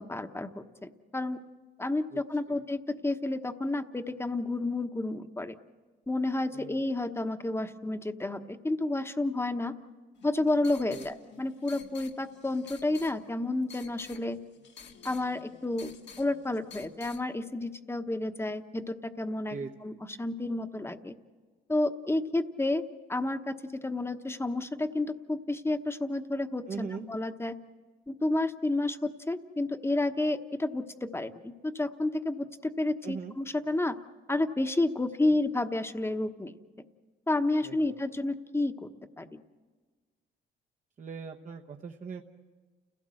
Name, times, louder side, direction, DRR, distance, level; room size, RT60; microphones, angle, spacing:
voice 1, 0.0-1.4 1.8-5.5 6.1-9.7 10.2-14.4 15.0-21.1 21.7-22.8 23.1-27.6 28.1-34.0 34.3-36.5 37.3-38.9 39.2-39.4, left 2 dB, 10° left, 8 dB, 1.1 m, -31 dB
voice 2, 6.5-6.9 10.9-11.1 19.5-20.0 26.7-27.1 33.0-33.3 35.2-35.4 37.6-38.0 41.0-42.2, right 5 dB, 40° right, 2 dB, 1.0 m, -40 dB
sound 1, 10.2-17.2, left 6 dB, 60° left, 1.7 m, -51 dB
29.5 x 16.5 x 7.7 m, 1.4 s
cardioid pair, 90°, 20 cm